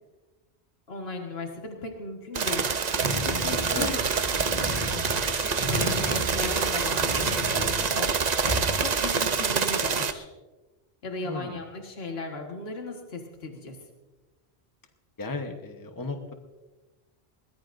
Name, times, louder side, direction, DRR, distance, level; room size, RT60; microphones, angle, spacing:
voice 1, 0.9-4.0 5.2-8.1 8.8-10.3 11.0-13.8, left 2 dB, 70° left, 2 dB, 1.8 m, -37 dB
sound 1, 2.3-10.1, right 5 dB, 45° right, 0.8 m, -26 dB
sound 2, 3.0-9.0, equal, 40° left, 5.0 m, -34 dB
voice 2, 11.2-11.6 15.2-16.3, left 2 dB, 20° left, 5 dB, 1.1 m, -35 dB
22.0 x 19.0 x 2.6 m, 1.2 s
omnidirectional pair, 1.1 m